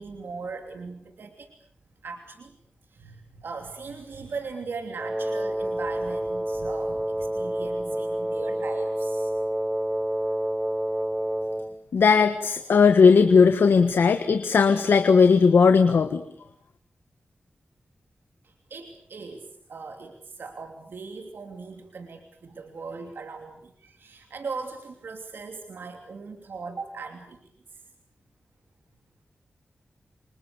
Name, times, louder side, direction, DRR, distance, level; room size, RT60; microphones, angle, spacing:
voice 1, 0.0-1.5 2.0-2.6 2.9-9.3 18.4-27.4 27.7-27.8, right 4 dB, 75° right, 4 dB, 3.0 m, -39 dB
Wind instrument woodwind instrument, 5.0-11.7, right 1 dB, 15° right, 1.7 m, -28 dB
voice 2, 11.9-16.2, left 5 dB, 80° left, 9 dB, 1.6 m, -17 dB
29.5 x 26.0 x 7.0 m, 0.65 s
wide cardioid pair, 115°, 4 cm